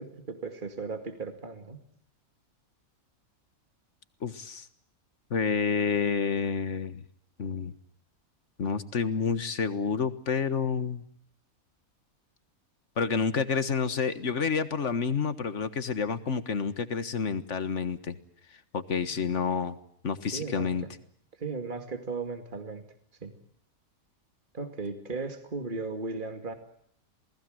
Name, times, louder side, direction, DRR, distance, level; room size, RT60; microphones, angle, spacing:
voice 1, 0.0-1.8 20.3-20.9 21.4-22.8 23.2-23.3 24.5-26.5, right 4 dB, 35° right, 6 dB, 2.5 m, -36 dB
voice 2, 4.2-4.7 5.3-7.0 7.4-7.7 8.6-11.0 13.0-18.2 18.7-19.8 20.0-20.8, left 5 dB, 60° left, 12 dB, 1.8 m, -29 dB
28.5 x 19.5 x 7.8 m, 0.68 s
omnidirectional pair, 1.5 m